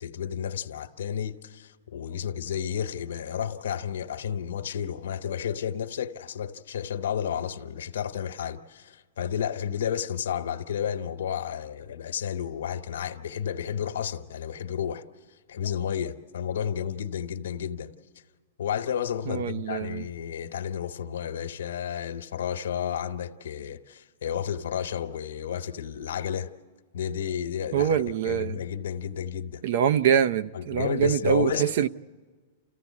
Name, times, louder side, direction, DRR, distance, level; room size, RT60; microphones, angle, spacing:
voice 1, 0.0-15.0 15.5-17.9 18.6-26.5 26.9-29.6 30.5-31.7, left 8 dB, 85° left, 1.0 m, -32 dB
voice 2, 19.3-20.1 27.7-28.6 29.6-31.9, right 9 dB, 60° right, 0.6 m, -24 dB
29.0 x 15.0 x 8.4 m
supercardioid pair, 160°, 0 cm